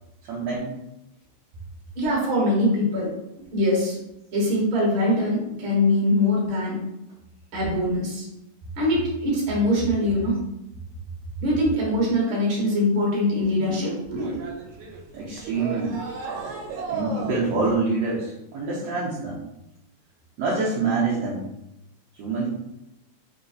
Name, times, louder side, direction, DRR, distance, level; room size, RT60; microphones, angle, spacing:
voice 1, 0.3-0.7 15.1-16.0 16.9-19.4 20.4-21.4 22.2-22.5, right 3 dB, 70° right, -6 dB, 1.6 m, -26 dB
voice 2, 2.0-3.1 3.5-4.0 4.3-6.8 7.5-8.3 8.8-10.3 11.4-14.4, left 1 dB, 50° right, -3 dB, 1.7 m, -23 dB
sound 1, 14.2-17.8, right 5 dB, 90° right, 2.2 m, -34 dB
4.8 x 2.0 x 3.8 m, 0.89 s
omnidirectional pair, 3.5 m